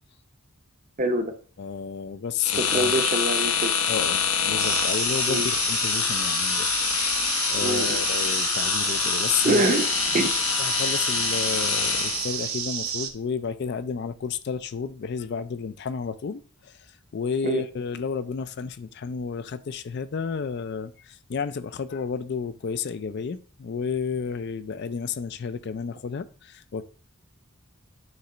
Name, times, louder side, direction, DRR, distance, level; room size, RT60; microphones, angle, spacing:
voice 1, 1.0-1.3 2.5-3.7 5.3-5.4 7.6-8.0 9.4-9.8 10.1-10.3 17.4-17.6, right 2 dB, 35° right, 7 dB, 0.7 m, -24 dB
voice 2, 1.6-3.0 3.9-6.8 7.5-9.7 10.1-10.3 10.6-26.8, left 6 dB, 50° left, 13 dB, 0.4 m, -31 dB
sound 1, 2.4-12.5, left 7 dB, 80° left, 0.9 m, -25 dB
sound 2, 4.6-13.1, right 8 dB, 75° right, 0.9 m, -31 dB
9.4 x 3.2 x 3.8 m, 0.41 s
head